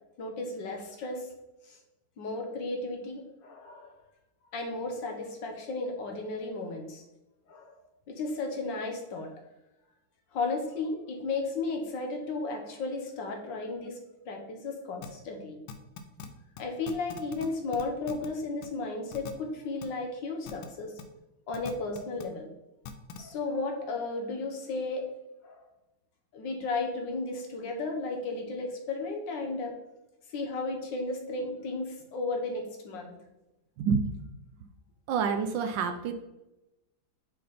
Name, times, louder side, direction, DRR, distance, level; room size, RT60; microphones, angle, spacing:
voice 1, 0.2-1.3 1.6-1.8 2.2-4.0 4.5-7.0 7.5-7.7 8.1-9.3 10.3-14.0 14.2-15.6 16.6-20.9 21.5-22.5 23.2-25.0 25.4-25.6 26.3-29.7 30.3-33.2, left 3 dB, 65° left, 2 dB, 1.7 m, -34 dB
sound 1, 15.0-15.1 15.7-16.3 16.6-16.7 16.9-17.5 17.7-18.3 18.6-18.7 19.1-19.3 19.8-19.9 20.5-20.7 21.0-21.1 21.5-22.2 22.9-23.2, left 7 dB, 90° left, 1.5 m, -41 dB
voice 2, 33.8-34.1 35.1-36.1, right 6 dB, 75° right, 7 dB, 1.2 m, -28 dB
6.4 x 4.0 x 4.1 m, 0.96 s
omnidirectional pair, 2.2 m